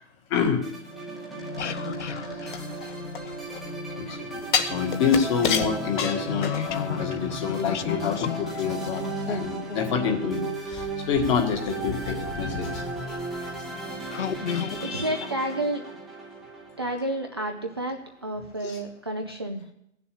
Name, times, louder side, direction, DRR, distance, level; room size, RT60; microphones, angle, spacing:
voice 1, 0.3-0.6 2.0-2.6 4.0-13.2 14.5-15.3 18.6-18.8, left 6 dB, 25° left, 4 dB, 1.7 m, -28 dB
sound 1, 0.6-18.0, right 2 dB, ahead, 0.8 m, -36 dB
sound 2, 1.4-4.2 4.5-11.3 12.2-12.3 12.9-13.1 13.6-13.7 14.1-14.9, left 8 dB, 65° left, 0.9 m, -34 dB
sound 3, 2.5-3.7 4.5-6.9 7.3-7.4, left 7 dB, 40° left, 1.4 m, -28 dB
voice 2, 14.8-15.8 16.8-19.6, right 1 dB, 20° right, 3 dB, 0.4 m, -30 dB
16.0 x 6.9 x 8.5 m, 0.79 s
hypercardioid pair, 155°, 39 cm